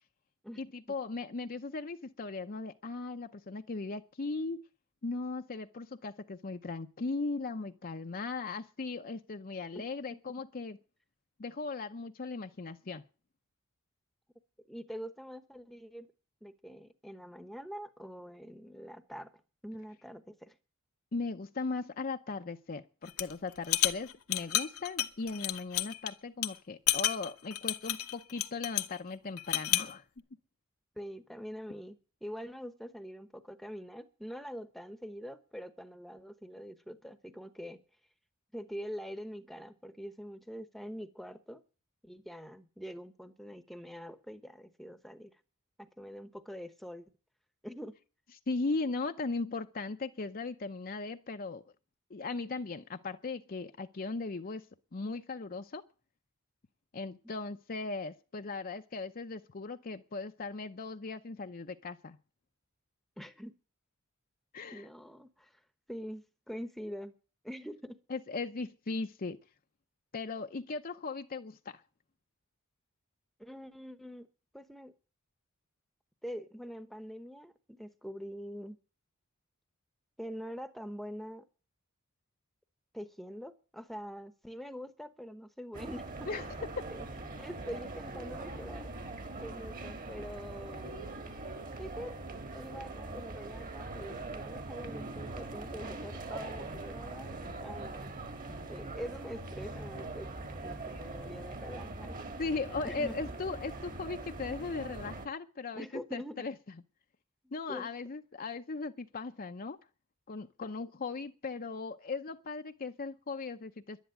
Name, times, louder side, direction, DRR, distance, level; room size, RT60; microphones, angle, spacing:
voice 1, 0.6-4.6 5.0-10.8 11.4-13.0 21.1-30.0 48.5-51.6 52.1-55.8 56.9-62.2 64.5-64.9 68.1-69.4 70.1-71.8 86.3-86.4 86.7-86.9 102.4-105.9 106.1-106.5 107.5-109.8 110.3-114.0, left 3 dB, 40° left, 0.7 m, -38 dB
voice 2, 14.7-16.1 16.4-19.3 19.6-20.5 31.0-37.8 38.5-41.6 42.0-45.3 45.8-47.1 47.6-47.9 63.2-63.5 64.7-65.6 65.9-67.1 67.4-68.0 73.4-74.3 74.5-74.9 76.2-78.8 80.2-81.4 82.9-86.3 86.9-87.1 87.4-88.9 89.4-91.1 91.8-92.2 92.5-98.1 98.7-100.3 100.6-102.2 102.8-103.4 105.7-106.4 107.7-107.9, equal, ahead, 0.9 m, -44 dB
sound 1, 23.1-23.3 23.6-26.1 26.4-26.5 26.9-29.0 29.4-29.9, left 13 dB, 80° left, 1.1 m, -30 dB
sound 2, 85.7-105.3, right 2 dB, 40° right, 1.8 m, -42 dB
11.5 x 10.5 x 9.1 m
head